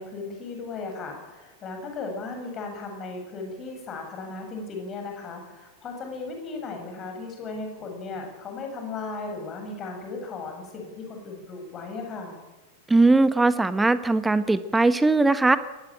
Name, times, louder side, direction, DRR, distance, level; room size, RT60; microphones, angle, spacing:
voice 1, 0.0-12.4, left 3 dB, 30° left, 3 dB, 7.3 m, -36 dB
voice 2, 12.9-15.6, right 3 dB, 10° right, 14 dB, 1.2 m, -20 dB
21.5 x 18.5 x 8.8 m, 1.2 s
figure-of-eight pair, 90°, 0 cm